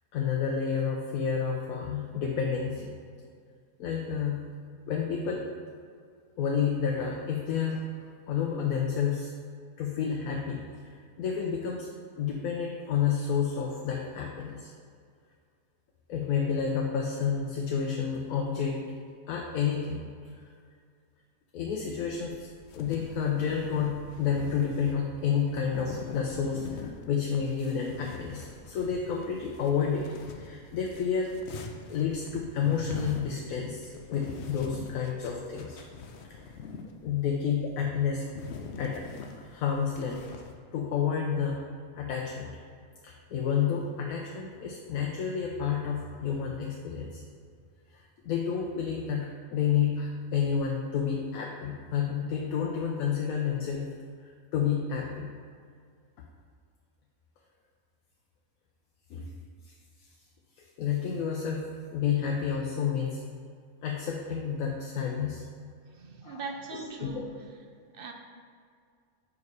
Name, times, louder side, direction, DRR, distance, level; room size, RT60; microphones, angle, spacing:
voice 1, 0.1-2.9 3.8-4.4 4.9-5.5 6.4-7.9 8.3-9.3 9.8-11.9 12.2-14.7 16.1-18.8 19.3-20.0 21.5-30.1 30.4-31.3 31.9-35.8 37.0-38.3 38.8-39.1 39.4-40.3 40.7-41.6 42.0-42.6 43.0-47.2 47.9-53.9 54.5-55.3 59.1-59.3 59.6-59.7 60.6-61.7 61.9-63.2 63.8-65.4 66.2-66.4 66.7-67.3, left 7 dB, 80° left, 0 dB, 1.1 m, -30 dB
sound 1, 21.9-40.5, left 5 dB, 60° left, 0.8 m, -44 dB
voice 2, 65.9-67.4 67.9-68.1, right 4 dB, 60° right, 3 dB, 0.6 m, -40 dB
5.5 x 4.9 x 4.7 m, 2.1 s
omnidirectional pair, 1.5 m